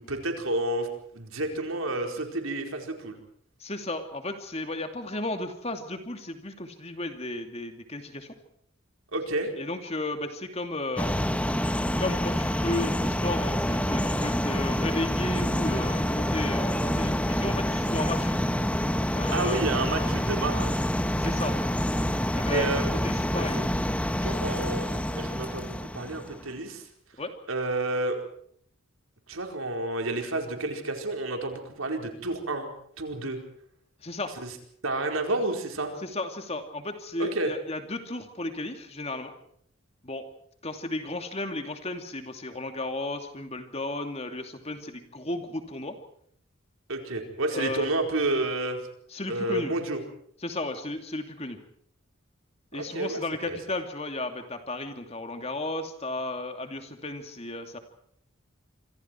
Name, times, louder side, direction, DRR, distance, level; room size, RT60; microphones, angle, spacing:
voice 1, 0.1-0.9 1.1-3.2 9.1-9.5 19.3-20.8 22.5-22.8 23.4-23.5 24.2-26.8 27.5-28.2 29.3-32.7 33.0-33.4 34.4-34.5 34.8-35.9 37.2-37.5 46.9-48.8 49.3-50.0 52.7-53.6, right 2 dB, 85° right, 4 dB, 4.6 m, -30 dB
voice 2, 3.6-8.3 9.6-11.1 12.0-18.3 19.1-19.6 21.2-21.5 22.3-22.7 23.0-23.7 27.2-27.3 34.0-34.3 36.0-39.3 40.0-40.3 40.6-46.0 47.5-47.9 49.1-49.7 50.4-51.6 52.7-57.8, left 2 dB, 30° left, 6 dB, 2.7 m, -34 dB
sound 1, 11.0-26.5, equal, 5° left, 1.0 m, -27 dB
26.5 x 25.5 x 4.6 m, 0.65 s
head